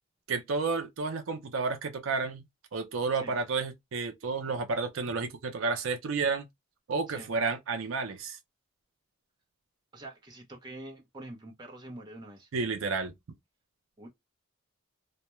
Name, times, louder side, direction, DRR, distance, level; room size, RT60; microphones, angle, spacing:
voice 1, 0.3-2.4 2.7-6.5 6.9-8.4 12.5-13.1, right 4 dB, 70° right, 0.5 m, -31 dB
voice 2, 9.9-12.5 14.0-14.1, right 1 dB, 20° right, 0.6 m, -45 dB
2.2 x 2.1 x 2.9 m
head